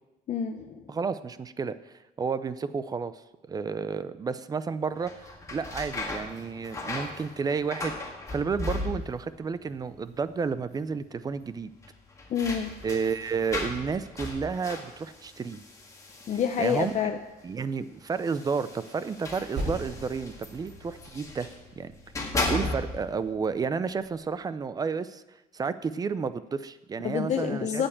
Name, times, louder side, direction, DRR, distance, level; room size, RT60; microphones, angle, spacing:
voice 1, 0.3-0.8 12.3-12.7 16.3-17.2 27.0-27.9, left 7 dB, 45° left, 5 dB, 0.7 m, -28 dB
voice 2, 0.9-3.1 3.5-5.1 5.5-11.7 12.8-15.6 16.6-16.9 17.4-21.5 21.8-21.9 22.2-25.2 25.5-27.8, right 5 dB, 25° right, 14 dB, 0.4 m, -31 dB
sound 1, 5.0-9.4 9.6-10.3 10.6-10.7 11.8-17.2 18.1-21.6 22.0-23.2, left 2 dB, 20° left, 1.8 m, -36 dB
Percussion, 19.6-24.4, right 1 dB, 80° right, 4.5 m, -41 dB
8.9 x 7.8 x 8.6 m, 1.0 s
cardioid pair, 155°, 17 cm